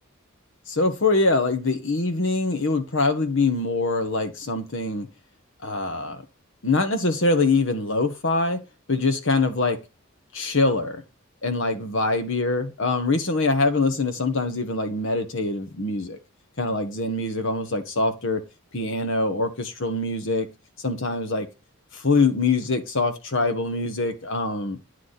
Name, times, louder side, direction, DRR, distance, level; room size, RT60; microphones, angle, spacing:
voice 1, 0.7-5.1 5.6-6.2 6.6-8.6 8.9-9.8 10.3-11.0 11.4-16.2 16.6-18.4 18.7-20.5 20.8-21.5 21.9-24.8, left 3 dB, 65° left, 1.4 m, -24 dB
9.7 x 4.7 x 4.1 m
head